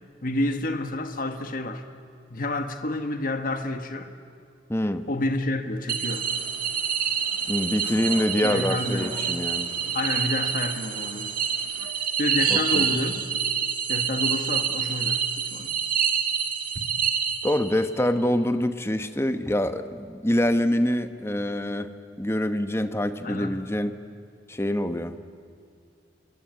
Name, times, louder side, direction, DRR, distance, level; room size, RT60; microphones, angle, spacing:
voice 1, 0.2-1.8 2.3-4.1 5.1-6.3 8.4-9.1 9.9-11.3 12.2-13.2 13.9-15.7 16.7-16.8 23.2-23.5, left 1 dB, 50° left, 7 dB, 1.5 m, -29 dB
voice 2, 4.7-5.0 7.5-9.7 12.5-12.8 17.4-21.9 22.2-24.0 24.5-25.3, left 1 dB, 15° left, 10 dB, 1.1 m, -25 dB
sound 1, 5.9-17.8, right 7 dB, 50° right, 1.9 m, -27 dB
sound 2, 6.1-11.9, left 2 dB, 75° left, 3.5 m, -45 dB
26.5 x 22.0 x 9.6 m, 2.2 s
head